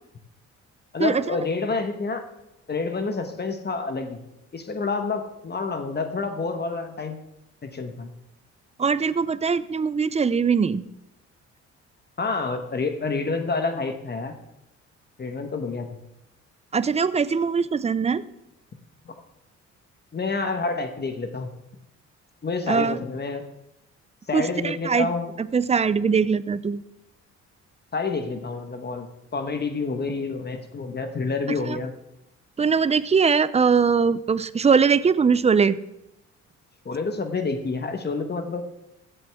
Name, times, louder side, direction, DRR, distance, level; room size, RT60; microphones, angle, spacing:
voice 1, 0.9-2.3 2.7-4.2 4.5-7.2 7.6-8.1 12.2-14.3 15.2-16.0 19.0-19.1 20.1-21.5 22.4-23.4 24.3-25.3 27.9-31.9 36.8-38.6, left 4 dB, 35° left, 6 dB, 1.3 m, -28 dB
voice 2, 8.8-10.8 16.7-18.2 22.7-23.0 24.3-25.1 25.5-26.8 31.7-31.8 32.6-35.8, right 5 dB, 20° right, 16 dB, 0.5 m, -21 dB
15.5 x 7.9 x 3.6 m, 0.87 s
cardioid pair, 90°, 30 cm